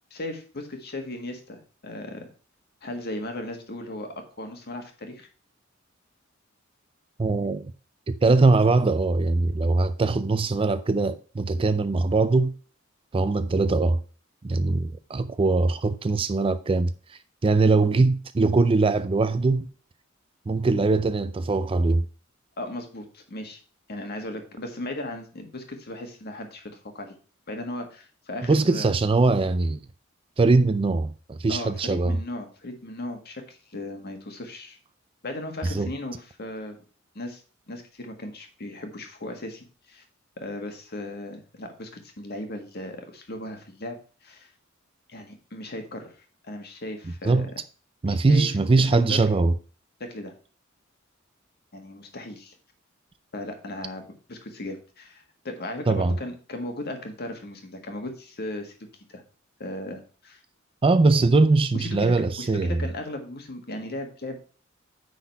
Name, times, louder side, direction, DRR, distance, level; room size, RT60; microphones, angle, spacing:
voice 1, 0.1-2.3 2.8-5.3 22.6-23.6 23.9-27.2 27.5-28.9 31.5-34.8 35.2-36.8 37.1-37.4 37.7-40.0 40.4-44.5 45.1-46.1 46.5-47.5 48.0-48.5 48.9-49.2 50.0-50.3 51.7-52.5 53.3-54.0 54.3-58.7 59.1-59.2 59.6-60.4 61.7-64.4, left 1 dB, 50° left, 1.7 m, -36 dB
voice 2, 7.2-7.7 8.1-12.5 13.1-14.0 14.4-19.7 20.5-22.1 28.5-29.8 30.4-32.2 35.6-35.9 47.2-47.5 48.0-49.5 55.9-56.1 60.8-62.8, right 3 dB, 25° right, 0.4 m, -21 dB
9.5 x 4.1 x 4.6 m
head